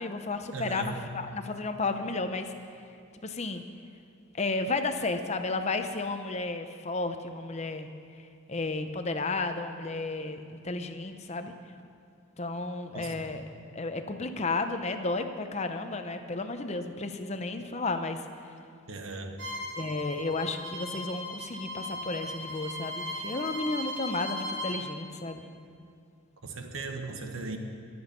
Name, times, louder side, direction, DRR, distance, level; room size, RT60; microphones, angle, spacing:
voice 1, 0.0-2.5 3.2-3.6 4.3-7.9 8.5-11.5 12.4-13.4 13.7-18.2 19.8-25.5, left 3 dB, 35° left, 7 dB, 0.8 m, -33 dB
voice 2, 0.5-1.1 12.9-13.3 18.9-19.4 26.4-27.6, right 3 dB, 85° right, 5 dB, 1.3 m, -37 dB
Bowed string instrument, 19.4-24.8, left 1 dB, 60° right, 2.4 m, -37 dB
23.0 x 7.9 x 5.3 m, 2.4 s
head